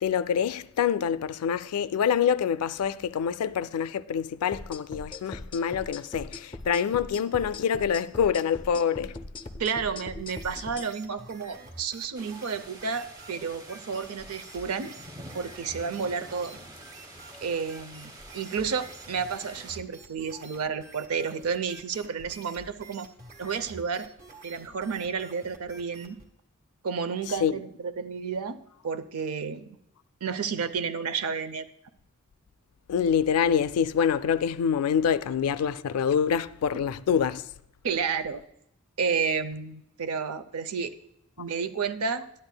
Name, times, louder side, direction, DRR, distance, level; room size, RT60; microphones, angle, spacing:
voice 1, 0.0-9.2 27.3-27.6 32.9-37.4, left 7 dB, 85° left, 0.4 m, -26 dB
sound 1, 4.5-10.9, left 2 dB, 20° left, 0.4 m, -40 dB
voice 2, 9.6-14.9 15.3-16.6 17.4-23.1 23.4-24.1 24.4-26.2 26.8-28.6 28.8-29.7 30.2-31.6 37.8-38.4 39.0-40.9 41.4-42.3, right 5 dB, 80° right, 0.6 m, -31 dB
sound 2, 10.2-26.3, right 2 dB, 45° right, 1.4 m, -49 dB
sound 3, 12.1-19.8, right 1 dB, 20° right, 0.6 m, -47 dB
12.5 x 9.7 x 2.2 m
head